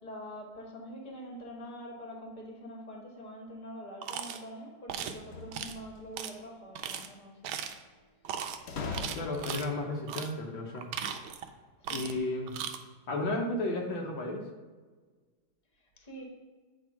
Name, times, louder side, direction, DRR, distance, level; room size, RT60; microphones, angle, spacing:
voice 1, 0.0-7.7 11.8-12.0 15.7-16.2, equal, 25° left, 0 dB, 1.4 m, -45 dB
sound 1, 4.0-4.4 4.9-5.2 5.5-5.8 6.2-6.3 6.7-7.1 7.4-7.8 8.2-8.6 8.9-9.7 10.1-10.3 10.7-11.5 11.8-12.2 12.5-12.8, right 8 dB, 90° right, 1.5 m, -37 dB
sound 2, 5.2-6.2 8.7-9.7, left 4 dB, 85° left, 0.5 m, -40 dB
voice 2, 9.1-10.9 11.9-12.6 13.1-14.4, left 2 dB, 70° left, 1 dB, 1.6 m, -33 dB
8.9 x 3.5 x 5.7 m, 1.4 s
omnidirectional pair, 2.3 m